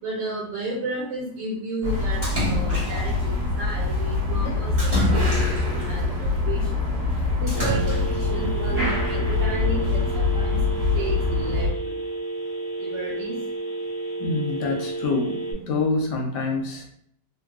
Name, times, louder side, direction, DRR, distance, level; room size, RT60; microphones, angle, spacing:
voice 1, 0.0-5.5 5.8-6.9 7.4-10.6 11.0-11.9 12.8-13.4, right 2 dB, 90° right, -4 dB, 1.5 m, -33 dB
sound 1, 1.8-11.7, left 3 dB, 40° right, 0.9 m, -24 dB
Splash splatter, 2.2-3.2 4.8-5.8 7.5-8.3, right 2 dB, 10° right, 1.0 m, -28 dB
Telephone, 7.5-15.5, right 2 dB, 65° left, 0.7 m, -31 dB
voice 2, 14.2-16.9, left 3 dB, 85° left, 2 dB, 1.3 m, -26 dB
3.7 x 2.3 x 2.3 m, 0.65 s
omnidirectional pair, 1.8 m